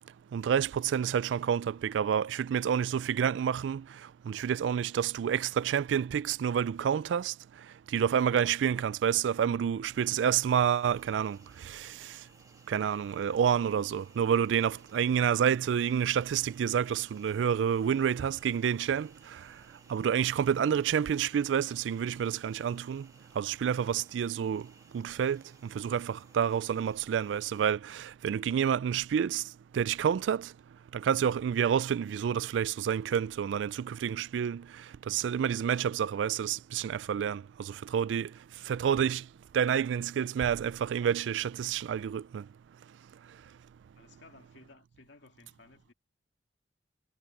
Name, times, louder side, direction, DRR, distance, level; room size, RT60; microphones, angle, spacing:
voice 1, 0.3-3.8 4.3-7.3 7.9-11.4 11.6-11.9 12.7-19.4 19.9-23.1 23.4-24.7 24.9-25.4 25.7-29.4 29.7-30.5 30.9-34.6 35.1-38.3 38.7-39.2 39.5-42.4, right 8 dB, 85° right, 0.3 m, -29 dB
sound 1, 9.8-27.7, right 3 dB, 20° right, 1.6 m, -61 dB
voice 2, 44.0-45.9, left 3 dB, 90° left, 2.1 m, -57 dB
head